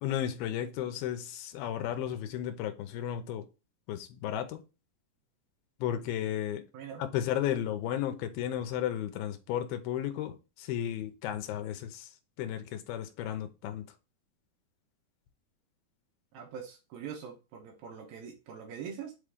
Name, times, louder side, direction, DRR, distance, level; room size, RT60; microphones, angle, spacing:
voice 1, 0.0-3.5 3.9-4.6 5.8-6.7 7.0-12.1 12.4-13.8, left 11 dB, 85° left, 2.6 m, -34 dB
voice 2, 16.3-19.1, right 7 dB, 80° right, 3.0 m, -43 dB
7.3 x 3.7 x 3.5 m
omnidirectional pair, 4.3 m